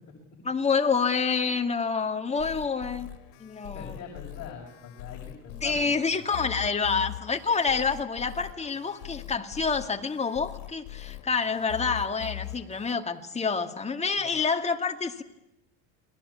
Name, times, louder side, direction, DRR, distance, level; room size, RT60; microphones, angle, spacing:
voice 1, 0.4-3.1 3.4-4.0 5.6-15.2, left 5 dB, 15° left, 5 dB, 2.2 m, -28 dB
sound 1, 2.4-12.9, left 16 dB, 80° left, 2.2 m, -42 dB
voice 2, 3.7-6.2 14.2-14.3, left 6 dB, 40° left, -2 dB, 6.6 m, -43 dB
29.5 x 21.5 x 8.7 m, 0.90 s
supercardioid pair, 125°, 40 cm